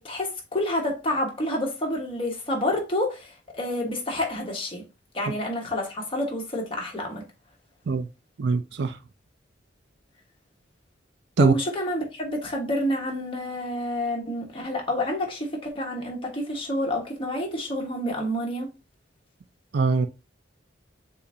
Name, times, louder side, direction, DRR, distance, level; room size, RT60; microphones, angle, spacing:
voice 1, 0.0-4.8 5.1-7.3 11.4-18.7, left 1 dB, 30° left, 1.3 m, -29 dB
voice 2, 8.4-9.0 11.4-11.5 19.7-20.1, right 4 dB, 60° right, 0.5 m, -21 dB
6.8 x 2.6 x 2.6 m
head